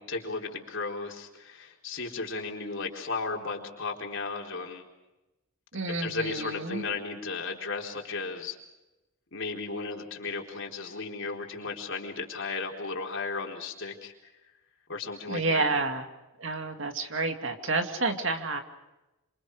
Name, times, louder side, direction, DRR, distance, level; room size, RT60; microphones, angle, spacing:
voice 1, 0.0-4.8 6.0-8.6 9.3-14.1 14.9-15.7, left 4 dB, 60° left, 0 dB, 4.3 m, -35 dB
voice 2, 5.7-6.8 15.3-16.1 16.4-18.6, right 3 dB, 60° right, 5 dB, 2.4 m, -29 dB
27.5 x 27.5 x 4.9 m, 1.0 s
head